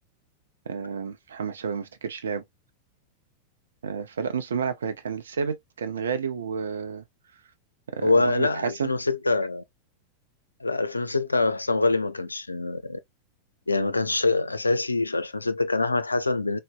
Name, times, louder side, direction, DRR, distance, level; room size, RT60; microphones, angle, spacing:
voice 1, 0.7-2.4 3.8-7.0 7.9-8.9, right 6 dB, 65° right, 0.5 m, -30 dB
voice 2, 8.0-9.6 10.6-13.0 13.7-16.6, left 3 dB, 80° left, 0.3 m, -25 dB
3.9 x 2.0 x 2.3 m
figure-of-eight pair, 90°, 0 cm